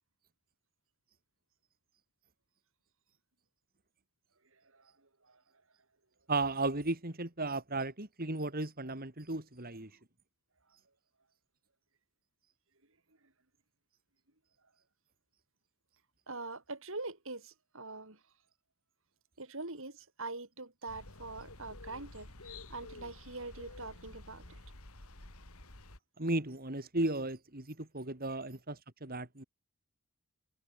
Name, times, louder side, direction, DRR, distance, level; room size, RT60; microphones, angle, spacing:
voice 1, 4.5-5.4 13.2-13.3 16.3-18.2 19.4-24.6, right 3 dB, 60° right, 5.6 m, -44 dB
voice 2, 6.3-9.9 26.2-29.4, right 2 dB, 45° right, 3.5 m, -35 dB
sound 1, 20.9-26.0, left 2 dB, 80° left, 4.5 m, -51 dB
head